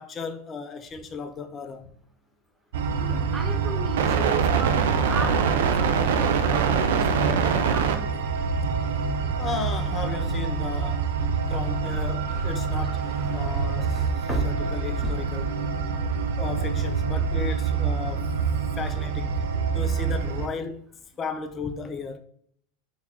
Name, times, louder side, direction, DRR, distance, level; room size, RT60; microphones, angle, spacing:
voice 1, 0.0-1.9 9.4-11.1 11.5-15.7 16.4-18.3 18.8-19.4 19.7-20.9 21.2-22.2, left 5 dB, 25° left, 0.4 m, -35 dB
sound 1, 2.7-20.5, right 5 dB, 80° right, 0.3 m, -25 dB
voice 2, 2.9-8.1 15.9-16.2, right 3 dB, 20° right, 0.5 m, -35 dB
sound 2, 11.9-16.0 16.3-16.9, equal, ahead, 0.8 m, -38 dB
3.8 x 2.4 x 2.9 m
supercardioid pair, 115°, 0 cm